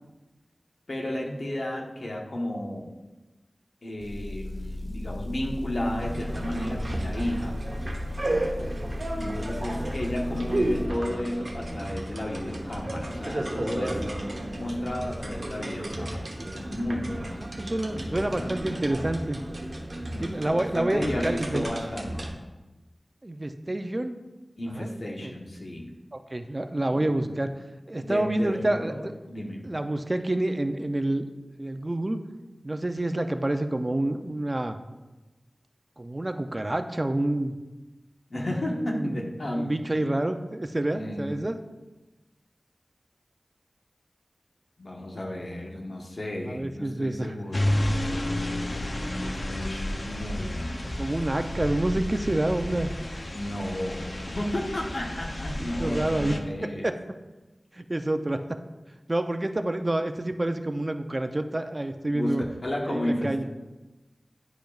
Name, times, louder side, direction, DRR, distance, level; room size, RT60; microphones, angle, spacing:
voice 1, 0.9-2.9 3.8-7.6 9.1-16.2 16.6-17.4 17.7-18.8 20.1-22.3 24.6-25.9 26.9-27.5 28.0-29.6 38.3-39.7 40.9-41.5 44.8-47.8 49.0-50.8 53.3-56.8 62.1-62.3 62.6-63.4, left 1 dB, 70° left, -1 dB, 1.2 m, -33 dB
Motor vehicle (road) / Engine, 4.0-10.9, left 1 dB, 15° left, 1.0 m, -36 dB
sound 1, 6.0-22.3, right 1 dB, 55° right, 1.0 m, -33 dB
voice 2, 17.6-19.4 20.2-21.7 23.2-24.2 24.8-24.9 25.2-25.3 26.1-27.5 27.9-29.1 29.6-31.2 31.6-32.2 32.6-34.8 36.0-37.5 38.7-39.2 39.5-41.6 46.5-47.3 49.2-49.5 50.8-52.9 55.5-56.3 56.6-57.0 57.7-58.4 59.1-62.4 62.9-63.4, right 1 dB, 35° right, 8 dB, 0.4 m, -28 dB
sound 2, 47.5-56.4, left 1 dB, 50° left, 0.6 m, -31 dB
10.5 x 5.0 x 2.4 m, 1.1 s
wide cardioid pair, 55°, 0 cm